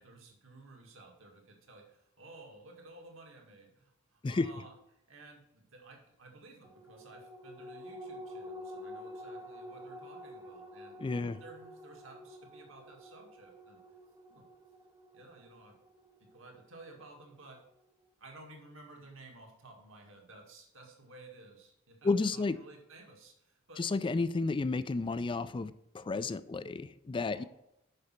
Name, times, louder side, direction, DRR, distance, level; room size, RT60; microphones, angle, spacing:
voice 1, 0.0-13.8 14.3-14.5 15.1-15.8 16.2-17.6 18.2-23.8 26.4-26.7 27.2-27.5, right 2 dB, 70° right, 1 dB, 2.0 m, -54 dB
sound 1, 6.6-17.4 17.8-17.9, equal, 15° right, 0.6 m, -49 dB
voice 2, 11.0-11.4 22.0-22.6 23.8-27.4, left 3 dB, 25° left, 15 dB, 0.3 m, -32 dB
6.5 x 6.1 x 5.8 m, 0.83 s
head